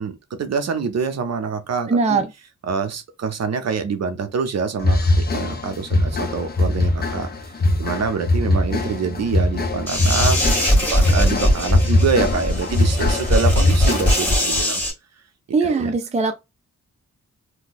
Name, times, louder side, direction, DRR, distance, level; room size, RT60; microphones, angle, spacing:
voice 1, 0.0-2.2 2.6-7.3 7.8-14.8 15.6-15.9, right 5 dB, 60° right, 0.7 m, -26 dB
voice 2, 1.9-2.3 15.5-16.3, right 4 dB, 25° right, 0.4 m, -20 dB
sound 1, 4.8-14.4, left 2 dB, 35° left, 0.7 m, -21 dB
sound 2, 9.9-14.9, left 1 dB, 5° left, 1.6 m, -20 dB
2.7 x 2.1 x 3.9 m
wide cardioid pair, 110°, 30 cm